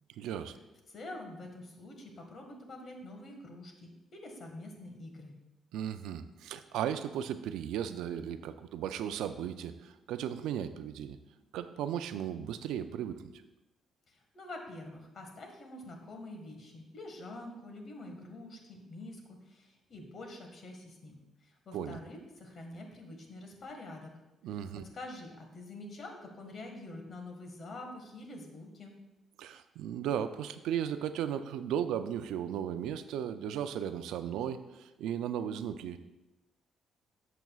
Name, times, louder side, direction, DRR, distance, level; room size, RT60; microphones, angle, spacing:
voice 1, 0.2-0.6 5.7-11.2 11.5-13.2 21.7-22.0 24.4-24.8 29.4-36.0, right 9 dB, 90° right, 10 dB, 0.4 m, -36 dB
voice 2, 0.9-5.3 14.1-24.1 24.5-29.0, left 2 dB, 50° left, 3 dB, 1.7 m, -46 dB
10.5 x 6.8 x 2.4 m, 1.0 s
cardioid pair, 90°, 0 cm